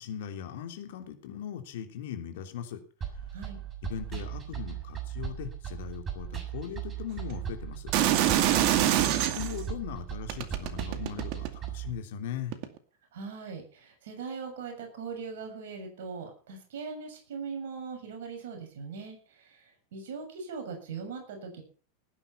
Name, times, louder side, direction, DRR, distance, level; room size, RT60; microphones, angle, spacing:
voice 1, 0.0-2.8 3.8-7.9 9.2-12.5, left 9 dB, 65° left, 6 dB, 3.2 m, -39 dB
sound 1, 3.0-11.9, right 10 dB, 30° right, 7.1 m, -37 dB
sound 2, 7.9-9.6 10.3-11.7 12.5-12.7, right 12 dB, 55° right, 2.2 m, -25 dB
voice 2, 13.1-21.6, right 5 dB, 70° right, 4 dB, 7.2 m, -40 dB
18.5 x 10.0 x 5.8 m, 0.40 s
hypercardioid pair, 90°, 0 cm